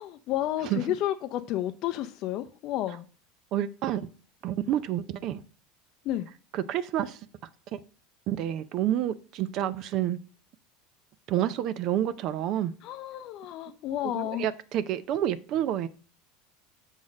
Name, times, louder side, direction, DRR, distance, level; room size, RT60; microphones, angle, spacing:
voice 1, 0.0-3.1 6.0-6.3 12.8-14.5, left 13 dB, 55° left, 7 dB, 0.5 m, -31 dB
voice 2, 3.5-4.0 4.4-5.4 6.5-7.2 7.7-7.8 8.3-10.2 11.3-12.7 14.0-15.9, right 11 dB, 55° right, 14 dB, 0.5 m, -29 dB
6.3 x 3.8 x 6.2 m, 0.39 s
hypercardioid pair, 95°, 0 cm